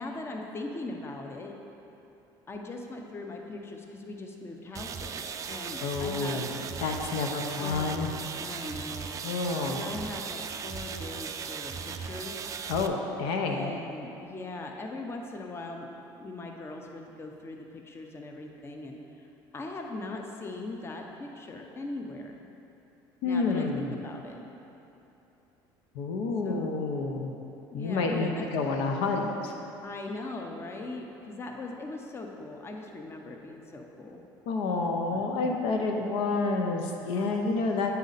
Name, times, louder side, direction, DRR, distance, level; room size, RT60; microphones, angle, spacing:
voice 1, 0.0-1.6 2.5-6.5 7.6-7.9 8.3-9.2 9.7-12.5 13.5-15.9 16.2-19.3 19.5-22.4 23.2-24.4 26.4-26.8 27.7-28.5 29.8-34.2 35.1-35.3, left 2 dB, 25° left, 2 dB, 0.7 m, -40 dB
sound 1, 4.7-12.9, right 6 dB, 35° right, 0.3 m, -37 dB
voice 2, 5.8-8.1 9.2-9.8 12.7-13.7 23.2-23.9 25.9-27.3 27.7-29.5 34.5-37.9, left 3 dB, 75° left, 2 dB, 0.6 m, -29 dB
8.6 x 4.2 x 4.0 m, 3.0 s
supercardioid pair, 95°, 10 cm